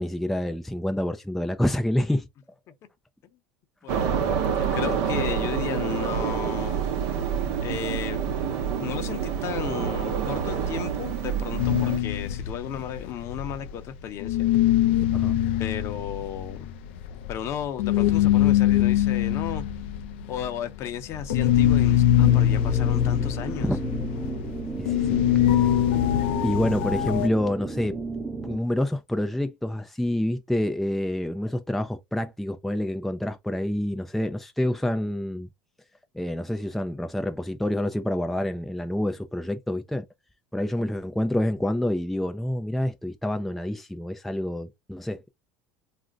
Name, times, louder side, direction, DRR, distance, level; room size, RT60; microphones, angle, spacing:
voice 1, 0.0-2.3 15.1-15.4 23.6-23.8 24.8-25.2 26.4-28.0 28.4-35.5 36.1-40.1 40.5-45.3, left 1 dB, 5° left, 0.3 m, -27 dB
voice 2, 3.8-6.8 7.6-8.2 8.8-14.4 15.6-16.6 17.3-19.6 20.3-23.7, left 9 dB, 50° left, 0.7 m, -34 dB
sound 1, 3.9-12.0, right 7 dB, 70° right, 0.7 m, -27 dB
sound 2, 11.6-13.9 14.2-27.3, left 12 dB, 80° left, 0.4 m, -23 dB
sound 3, 22.2-28.6, right 3 dB, 15° right, 0.7 m, -34 dB
2.5 x 2.1 x 3.7 m
supercardioid pair, 100°, 6 cm